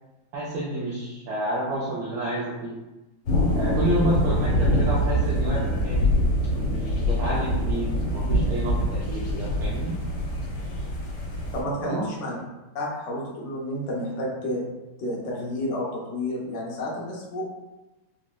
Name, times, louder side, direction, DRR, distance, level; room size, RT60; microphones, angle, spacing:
voice 1, 0.3-2.8 3.5-6.1 6.5-10.0 11.8-12.0, right 1 dB, 70° right, -6 dB, 1.0 m, -30 dB
sound 1, 3.3-11.6, equal, 90° left, 1.5 m, -24 dB
voice 2, 11.5-12.3 12.7-14.6 15.0-17.4, left 1 dB, 60° left, -3 dB, 0.8 m, -30 dB
3.9 x 2.1 x 2.2 m, 1.1 s
omnidirectional pair, 2.1 m